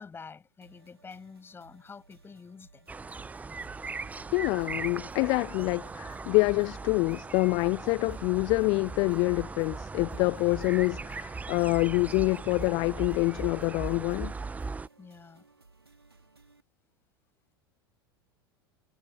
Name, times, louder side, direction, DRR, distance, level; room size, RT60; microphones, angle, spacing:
voice 1, 0.0-2.9 15.0-15.4, left 5 dB, 20° left, 6.2 m, -48 dB
sound 1, 0.6-16.6, right 3 dB, 80° right, 3.3 m, -61 dB
sound 2, 2.9-14.9, right 4 dB, 10° right, 0.9 m, -39 dB
voice 2, 4.3-14.3, left 29 dB, 40° left, 0.5 m, -26 dB
figure-of-eight pair, 80°, 13 cm